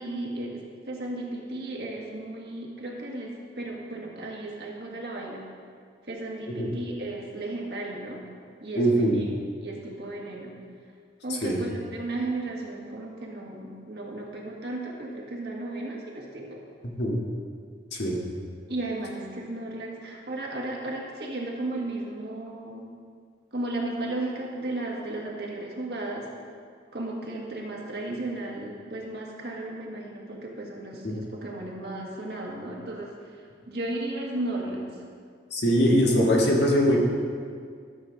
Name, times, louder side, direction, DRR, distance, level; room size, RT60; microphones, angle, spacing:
voice 1, 0.0-5.4 6.1-8.2 8.6-9.1 9.6-10.6 11.2-16.6 18.7-22.9 23.5-26.3 26.9-33.3 33.7-34.8, right 2 dB, 60° right, -2 dB, 1.6 m, -34 dB
voice 2, 8.8-9.2 11.4-11.6 16.8-17.3 17.9-18.2 31.0-31.2 35.5-37.0, equal, 70° left, -2 dB, 1.7 m, -22 dB
12.5 x 7.1 x 3.9 m, 2.1 s
head